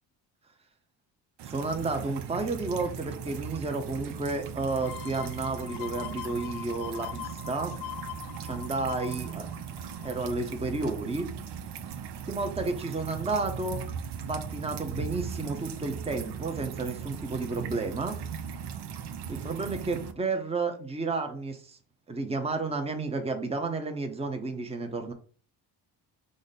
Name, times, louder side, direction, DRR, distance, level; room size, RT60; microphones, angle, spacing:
voice 1, 1.4-7.7 8.4-9.5 10.0-11.3 12.3-13.8 14.3-18.2 19.3-21.8 22.1-25.1, right 3 dB, 15° right, 5 dB, 0.7 m, -31 dB
sound 1, 1.4-20.1, right 7 dB, 65° right, 0.7 m, -38 dB
sound 2, 4.8-10.3 10.8-10.9, left 15 dB, 60° left, 0.5 m, -42 dB
5.0 x 2.1 x 4.0 m, 0.41 s
cardioid pair, 85°, 44 cm